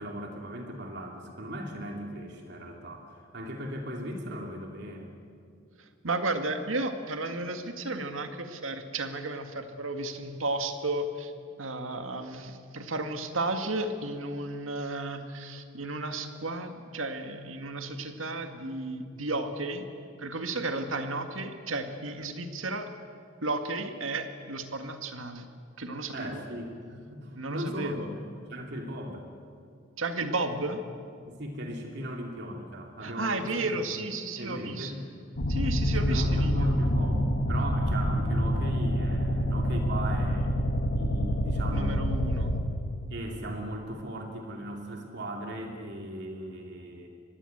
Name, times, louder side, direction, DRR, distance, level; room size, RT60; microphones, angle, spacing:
voice 1, 0.0-5.1 26.1-28.1 28.5-29.2 31.3-34.0 34.3-35.0 36.0-42.0 43.1-47.1, equal, 60° right, 2 dB, 2.8 m, -38 dB
voice 2, 6.0-11.3 11.6-19.8 20.2-22.9 23.4-25.5 25.8-26.4 27.3-28.1 30.0-30.8 33.0-34.9 35.5-36.8 41.7-42.5, right 2 dB, 85° right, 6 dB, 2.0 m, -33 dB
sound 1, 35.4-42.6, equal, 60° left, 2.6 m, -27 dB
25.5 x 21.0 x 8.1 m, 2.3 s
head